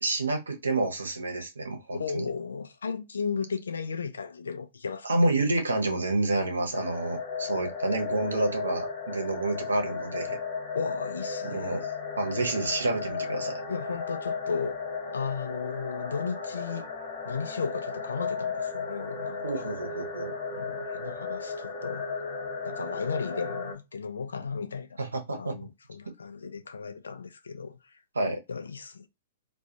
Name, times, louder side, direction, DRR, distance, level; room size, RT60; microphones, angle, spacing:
voice 1, 0.0-2.2 5.0-10.4 11.4-11.9 12.2-13.6 19.4-20.3 25.0-25.6 28.1-28.4, right 2 dB, 80° right, 0.8 m, -29 dB
voice 2, 1.9-5.1 10.7-11.9 13.7-14.8 15.1-16.9 17.2-19.7 20.5-22.1 22.6-25.0 25.3-28.0 28.5-29.1, left 5 dB, 75° left, 0.4 m, -35 dB
sound 1, 6.7-23.7, left 5 dB, 45° left, 1.3 m, -35 dB
2.4 x 2.3 x 2.7 m
figure-of-eight pair, 105°, 0 cm